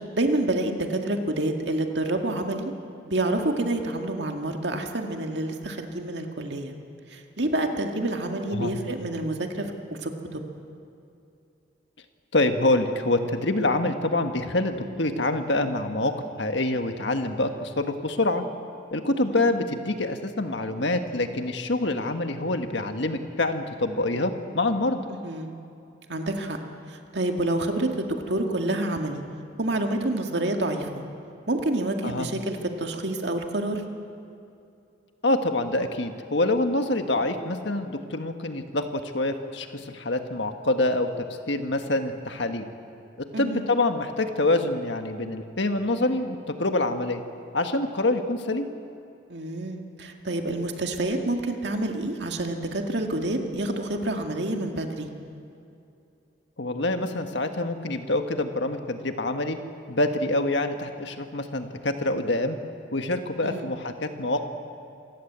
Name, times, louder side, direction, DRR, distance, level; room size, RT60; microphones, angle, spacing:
voice 1, 0.1-2.7 3.1-6.7 7.1-9.7 10.0-10.4 19.3-19.5 25.2-25.5 26.1-26.6 26.9-29.2 29.6-31.0 31.5-33.8 43.3-43.7 49.3-55.1 63.4-63.7, right 1 dB, 65° right, 4 dB, 2.1 m, -28 dB
voice 2, 12.3-16.1 16.4-18.4 18.9-25.0 32.0-32.3 35.2-42.6 43.2-47.2 47.5-48.7 56.6-59.6 59.9-62.6 62.9-64.4, left 2 dB, 70° left, 7 dB, 1.6 m, -26 dB
27.0 x 16.0 x 8.2 m, 2.6 s
head